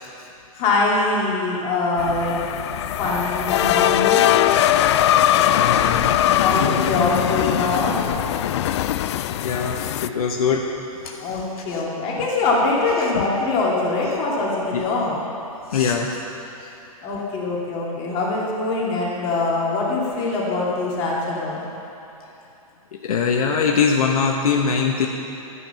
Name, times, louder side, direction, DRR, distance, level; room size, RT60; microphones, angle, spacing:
voice 1, 0.5-2.4 3.0-4.3 6.4-8.0 11.2-15.2 17.0-21.6, left 3 dB, 30° left, -4 dB, 2.9 m, -23 dB
sound 1, 2.0-10.1, left 11 dB, 50° left, 0.4 m, -20 dB
voice 2, 5.5-6.2 6.6-6.7 8.6-8.8 9.4-11.8 13.0-13.3 14.7-14.8 15.7-16.2 16.6-16.7 23.0-25.1, left 6 dB, 75° left, 1 dB, 1.0 m, -23 dB
12.5 x 9.9 x 5.7 m, 2.8 s
hypercardioid pair, 145°, 19 cm